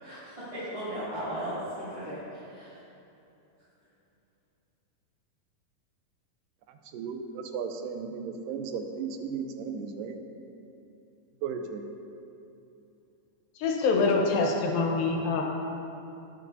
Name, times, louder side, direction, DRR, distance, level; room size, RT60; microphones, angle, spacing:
voice 1, 0.0-2.8, equal, 10° right, -15 dB, 2.3 m, -36 dB
voice 2, 6.7-10.2 11.4-11.8, right 6 dB, 80° right, 5 dB, 2.3 m, -35 dB
voice 3, 13.6-15.4, left 3 dB, 90° left, 1 dB, 2.9 m, -25 dB
20.0 x 7.6 x 2.8 m, 2.8 s
omnidirectional pair, 4.0 m